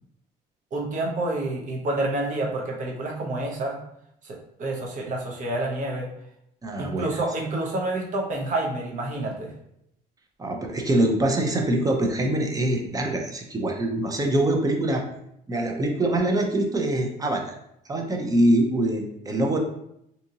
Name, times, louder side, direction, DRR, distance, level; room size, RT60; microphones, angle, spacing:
voice 1, 0.7-3.8 4.2-6.1 6.8-9.5, right 2 dB, 50° right, -1 dB, 0.8 m, -28 dB
voice 2, 6.6-7.1 10.4-15.0 15.5-17.5 17.9-19.6, right 1 dB, 20° right, 2 dB, 0.5 m, -24 dB
2.8 x 2.5 x 2.7 m, 0.76 s
cardioid pair, 110°, 17 cm